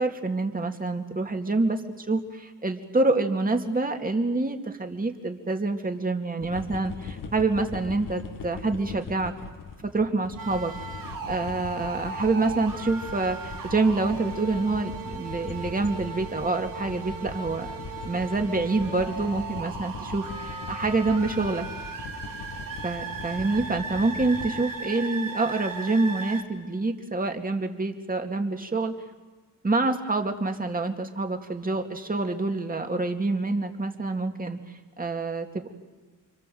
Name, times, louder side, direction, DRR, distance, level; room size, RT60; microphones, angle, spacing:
voice 1, 0.0-9.3 9.8-10.7 11.2-17.7 18.1-21.6 22.8-28.9 29.6-34.6 35.0-35.7, right 3 dB, 25° right, 5 dB, 2.3 m, -27 dB
sound 1, 6.4-24.6, left 5 dB, 80° left, 1.8 m, -41 dB
sound 2, 10.4-26.4, right 4 dB, 85° right, 3.2 m, -37 dB
29.5 x 25.5 x 7.8 m, 1.3 s
wide cardioid pair, 120°, 32 cm